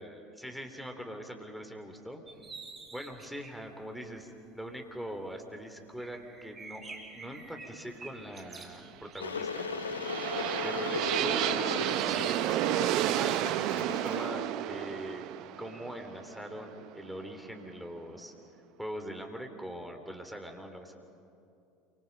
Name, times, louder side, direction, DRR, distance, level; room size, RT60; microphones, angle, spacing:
voice 1, 0.0-2.2 2.9-9.7 10.6-12.8 13.1-15.2 15.6-18.3 18.8-20.9, equal, ahead, 4 dB, 3.4 m, -42 dB
sound 1, 2.3-3.6 4.2-4.3 4.7-4.8 4.9-5.0 5.3-5.4 5.9-10.0 10.8-11.1 11.8-12.4, right 3 dB, 25° right, 4.2 m, -49 dB
Water / Boiling, 9.2-14.3, left 5 dB, 85° left, 1.0 m, -37 dB
sound 2, 9.3-17.3, right 13 dB, 55° right, 0.7 m, -31 dB
28.5 x 25.0 x 5.4 m, 2.6 s
figure-of-eight pair, 75°, 0 cm